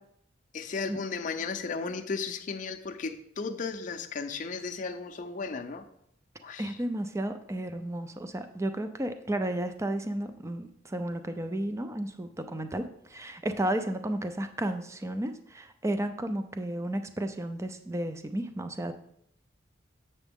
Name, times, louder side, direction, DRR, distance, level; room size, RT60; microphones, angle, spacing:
voice 1, 0.5-5.9 6.4-6.8, left 4 dB, 40° left, 6 dB, 0.5 m, -35 dB
voice 2, 6.6-18.9, right 1 dB, 15° right, 9 dB, 0.4 m, -33 dB
7.2 x 6.7 x 3.6 m, 0.73 s
head